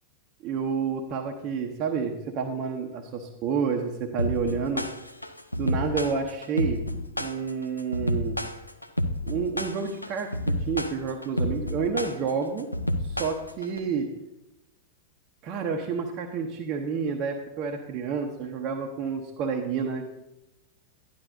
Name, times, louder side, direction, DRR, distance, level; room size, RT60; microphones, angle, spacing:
voice 1, 0.4-4.9 5.6-6.9 7.1-8.4 9.2-12.7 13.0-14.1 15.4-20.0, right 6 dB, 35° right, 2 dB, 0.8 m, -29 dB
sound 1, 4.2-13.8, left 1 dB, 85° left, 0.5 m, -29 dB
11.0 x 11.0 x 2.7 m, 0.97 s
figure-of-eight pair, 90°, 0 cm